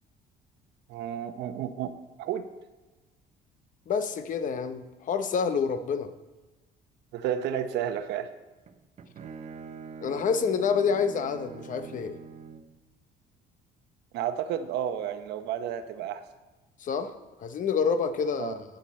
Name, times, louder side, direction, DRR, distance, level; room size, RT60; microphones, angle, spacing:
voice 1, 0.9-2.5 7.1-8.3 14.1-16.2 18.4-18.6, right 9 dB, 85° right, 10 dB, 0.9 m, -32 dB
voice 2, 3.9-6.1 10.0-12.2 16.8-17.1 17.4-18.6, left 6 dB, 50° left, 10 dB, 0.8 m, -28 dB
Bowed string instrument, 8.7-12.8, right 5 dB, 40° right, 0.8 m, -44 dB
13.5 x 9.0 x 4.3 m, 1.2 s
cardioid pair, 110°, 17 cm